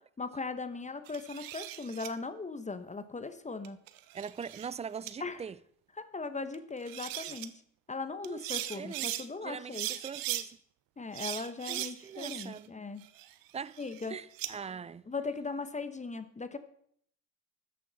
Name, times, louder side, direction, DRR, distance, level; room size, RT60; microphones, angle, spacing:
voice 1, 0.2-3.8 5.2-5.4 6.0-7.6 7.9-9.9 11.0-13.1 13.8-14.2 15.1-16.6, left 4 dB, 20° left, 1.0 m, -38 dB
sound 1, 1.1-2.1 3.6-4.7 5.1-5.2 6.5-6.6 6.8-7.5 8.2-9.2 9.7-10.4 11.1-12.7 13.0-14.5, right 15 dB, 70° right, 0.9 m, -38 dB
voice 2, 4.1-5.6 8.2-8.4 8.7-10.6 11.7-12.7 13.5-13.8 14.1-15.0, right 6 dB, 20° right, 0.4 m, -42 dB
13.5 x 9.5 x 4.0 m
supercardioid pair, 70°, 36 cm